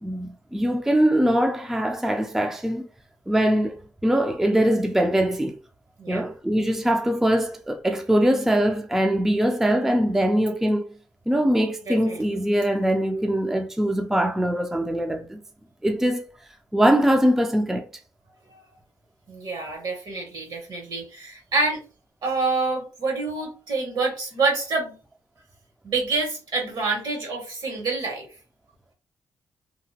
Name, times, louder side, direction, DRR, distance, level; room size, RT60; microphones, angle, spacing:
voice 1, 0.0-2.9 3.3-5.6 6.1-10.9 11.3-15.4 15.8-16.2 16.7-17.9, equal, 5° right, 0.4 m, -22 dB
voice 2, 11.8-12.2 18.5-18.6 19.3-21.8 22.2-25.0 25.8-28.3, right 3 dB, 70° right, 1.6 m, -27 dB
2.8 x 2.4 x 2.7 m
cardioid pair, 75°, 7 cm